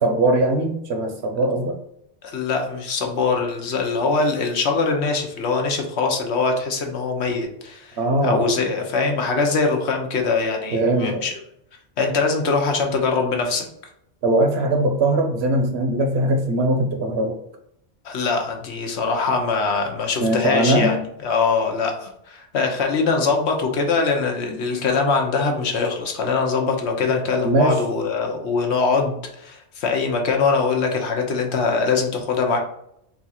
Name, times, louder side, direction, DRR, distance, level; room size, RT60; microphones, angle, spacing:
voice 1, 0.0-1.8 8.0-8.5 10.7-11.2 14.2-17.4 20.2-21.0 27.4-27.8, right 1 dB, 65° right, 4 dB, 1.0 m, -20 dB
voice 2, 2.2-11.3 12.0-13.7 18.0-21.0 21.2-32.6, left 4 dB, 70° left, 2 dB, 1.0 m, -22 dB
3.9 x 2.4 x 4.2 m, 0.74 s
omnidirectional pair, 1.2 m